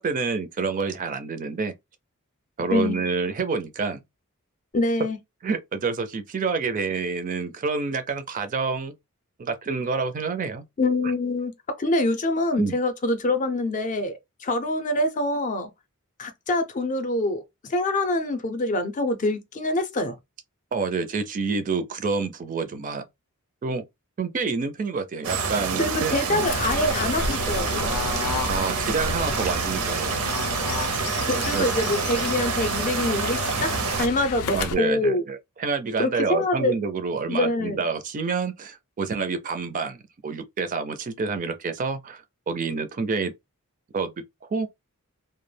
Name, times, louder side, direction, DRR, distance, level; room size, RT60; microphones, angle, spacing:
voice 1, 0.0-1.7 2.6-4.0 5.4-8.9 9.4-10.6 12.6-12.8 20.7-23.0 23.6-23.8 24.2-26.5 28.5-30.5 31.5-31.7 34.5-43.3 43.9-44.1 44.4-44.7, right 4 dB, 35° right, 0.4 m, -28 dB
voice 2, 4.7-5.2 10.8-11.5 11.8-15.7 16.2-20.2 25.8-28.0 31.3-35.2 36.0-36.7 37.3-37.8, left 2 dB, 35° left, 0.5 m, -25 dB
sound 1, 25.2-34.1, right 5 dB, 90° right, 0.6 m, -27 dB
Fowl / Bird, 26.4-34.7, left 4 dB, 90° left, 0.5 m, -32 dB
2.2 x 2.1 x 3.2 m
head